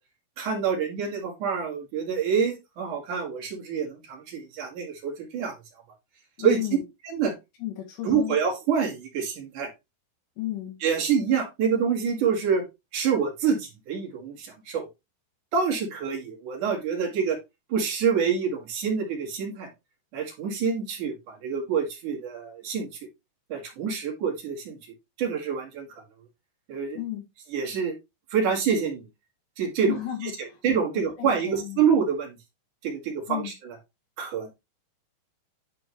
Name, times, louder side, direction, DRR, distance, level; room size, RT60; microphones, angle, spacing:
voice 1, 0.4-5.5 6.4-6.6 7.0-7.3 8.0-9.7 10.8-12.6 12.9-14.9 15.5-17.4 17.7-19.7 20.1-22.9 23.5-24.8 25.2-25.9 26.7-27.0 27.5-27.9 28.3-29.1 29.6-30.0 30.6-32.4 32.8-33.8 34.2-34.5, right 6 dB, 55° right, 0 dB, 2.9 m, -26 dB
voice 2, 6.4-6.8 7.6-8.4 10.4-10.8 26.9-27.2 29.8-30.6 31.2-31.8 33.3-33.5, left 13 dB, 75° left, 2 dB, 3.9 m, -33 dB
11.0 x 4.3 x 3.1 m, 0.22 s
omnidirectional pair, 5.1 m